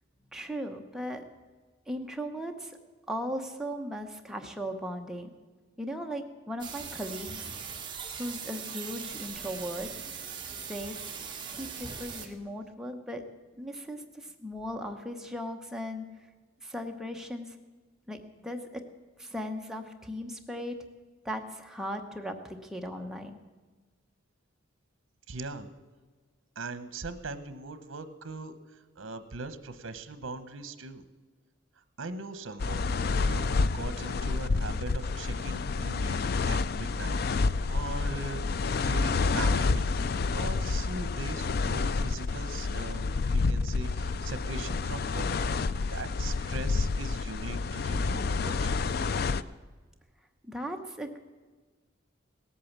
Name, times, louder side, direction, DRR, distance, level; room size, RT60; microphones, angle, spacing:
voice 1, 0.3-1.2 1.9-2.8 3.1-5.3 5.8-7.5 8.2-9.9 10.6-11.1 11.5-13.2 13.6-16.1 16.6-17.6 18.1-18.8 19.2-20.7 21.2-23.4 50.4-51.2, equal, 5° right, 3 dB, 0.9 m, -37 dB
sound 1, 6.6-12.3, right 6 dB, 25° right, 1.4 m, -40 dB
voice 2, 25.3-25.7 26.6-28.6 29.0-31.0 32.0-32.9 33.2-45.3 45.9-48.8, right 3 dB, 80° right, 12 dB, 0.9 m, -40 dB
sound 2, 32.6-49.4, left 4 dB, 50° left, 0.4 m, -29 dB
18.0 x 8.5 x 7.3 m, 1.3 s
head